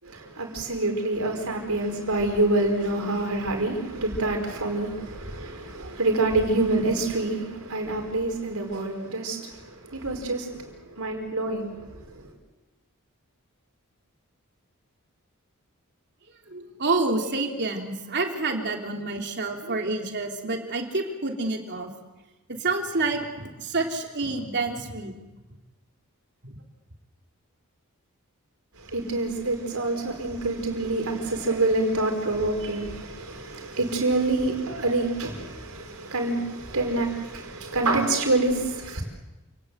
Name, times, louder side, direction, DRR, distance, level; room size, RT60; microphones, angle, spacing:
voice 1, 0.0-12.3 28.8-39.0, right 2 dB, 75° right, 5.1 m, -27 dB
voice 2, 16.5-21.9 22.5-25.2, right 3 dB, 50° right, 3.3 m, -28 dB
28.5 x 18.5 x 8.0 m
head